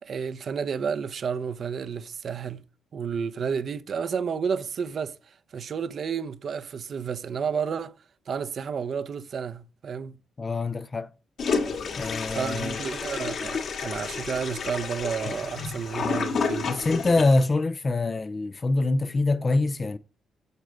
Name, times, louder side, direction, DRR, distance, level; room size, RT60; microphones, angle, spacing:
voice 1, 0.0-2.6 2.9-7.9 8.3-10.2 12.3-16.8, right 6 dB, 55° right, 0.7 m, -31 dB
voice 2, 10.4-11.1 12.0-12.8 16.7-20.0, left 3 dB, 30° left, 0.5 m, -24 dB
Toilet flush, 11.4-17.4, left 5 dB, 60° left, 1.9 m, -30 dB
8.1 x 6.5 x 3.9 m
cardioid pair, 90°, 0 cm